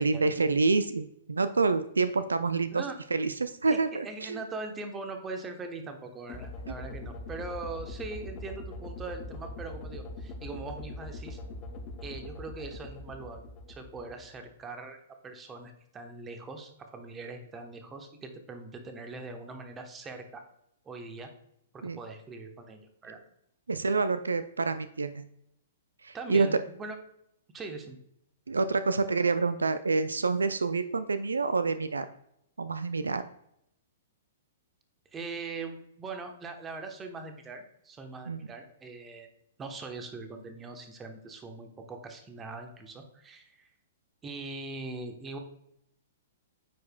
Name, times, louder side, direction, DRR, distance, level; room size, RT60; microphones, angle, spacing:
voice 1, 0.0-2.8 3.1-4.4 21.8-22.0 23.7-25.2 26.0-26.5 28.5-32.1 32.6-33.3 38.3-38.5, right 4 dB, 80° right, 12 dB, 0.3 m, -27 dB
voice 2, 3.7-11.4 12.0-15.0 15.2-20.4 20.8-21.3 21.7-23.2 26.1-27.0 27.5-28.0 35.1-39.3 39.6-43.7 44.2-45.4, right 3 dB, 15° right, 5 dB, 1.0 m, -41 dB
sound 1, 6.3-14.5, left 2 dB, 30° left, 0.7 m, -42 dB
9.1 x 5.0 x 2.2 m, 0.76 s
figure-of-eight pair, 115°, 0 cm